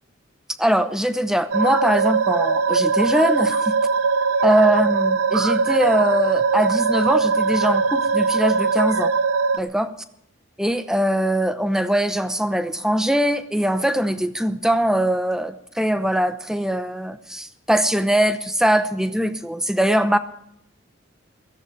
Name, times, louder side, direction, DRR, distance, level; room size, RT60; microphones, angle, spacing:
voice 1, 0.6-3.8 4.4-9.1 9.6-9.9 10.6-20.2, right 1 dB, 5° right, 10 dB, 0.8 m, -21 dB
sound 1, 1.5-9.6, right 4 dB, 90° right, 0.6 m, -21 dB
16.5 x 15.0 x 4.7 m, 0.78 s
head